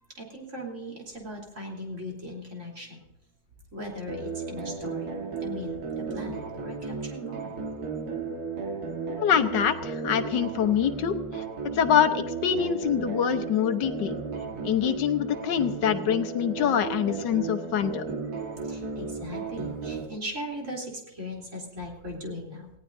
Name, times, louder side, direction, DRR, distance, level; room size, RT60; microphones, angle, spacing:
voice 1, 0.2-3.0 3.7-7.5 18.7-22.7, equal, 45° right, -2 dB, 3.8 m, -38 dB
sound 1, 4.1-20.1, right 4 dB, 65° right, 2.1 m, -34 dB
voice 2, 9.2-11.4 11.7-14.1 14.6-18.0, left 8 dB, 85° left, 8 dB, 1.6 m, -25 dB
19.5 x 17.0 x 2.6 m, 0.92 s
omnidirectional pair, 1.8 m